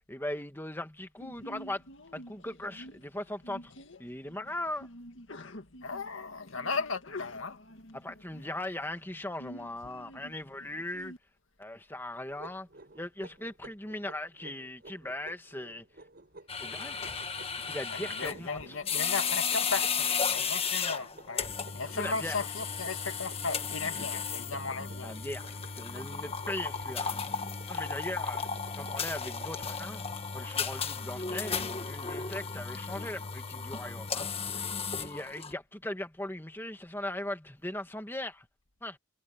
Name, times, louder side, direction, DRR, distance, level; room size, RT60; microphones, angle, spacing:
voice 1, 0.1-1.8 2.1-3.7 4.0-4.9 7.9-11.1 11.6-12.7 13.0-15.8 16.6-17.2 17.7-18.6 22.0-22.4 25.0-27.2 27.7-28.5 28.8-30.0 30.3-31.6 31.9-34.3 34.9-38.5 38.8-39.0, left 1 dB, 10° left, 1.8 m, -39 dB
Sneeze, 1.2-11.2, left 1 dB, 65° left, 1.9 m, -49 dB
voice 2, 5.8-7.6 17.9-21.5 21.7-25.2, left 4 dB, 85° left, 2.2 m, -36 dB
sound 1, 12.3-29.7, right 2 dB, 50° right, 6.6 m, -54 dB
sound 2, 16.5-35.5, left 6 dB, 30° left, 1.5 m, -34 dB
head